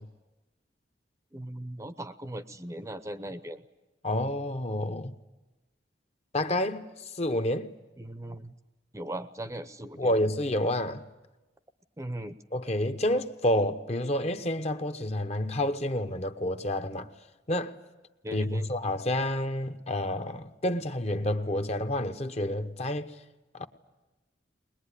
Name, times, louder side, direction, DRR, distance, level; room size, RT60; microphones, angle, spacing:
voice 1, 1.3-3.6 8.0-8.5 8.9-10.1 12.0-12.4 18.2-18.7, right 1 dB, 15° right, 0.7 m, -38 dB
voice 2, 4.0-5.1 6.3-6.9 7.2-7.7 10.0-11.0 12.5-17.1 17.5-17.7 18.3-23.1 23.5-23.7, left 1 dB, 35° left, 1.0 m, -29 dB
21.5 x 21.5 x 9.9 m
head